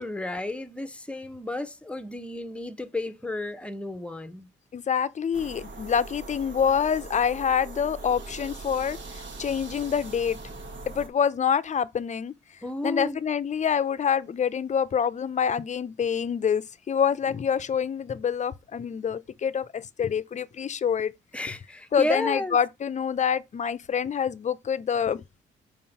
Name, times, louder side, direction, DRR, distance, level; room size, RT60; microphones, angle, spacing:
voice 1, 0.0-4.5 12.6-13.2 21.3-22.6, left 1 dB, 5° left, 0.9 m, -32 dB
voice 2, 4.7-9.0 9.4-10.4 10.9-12.3 12.8-21.1 21.9-25.2, left 7 dB, 35° left, 0.6 m, -26 dB
sound 1, 5.3-11.1, right 3 dB, 65° right, 1.6 m, -41 dB
5.0 x 3.8 x 5.6 m
cardioid pair, 90°, 20 cm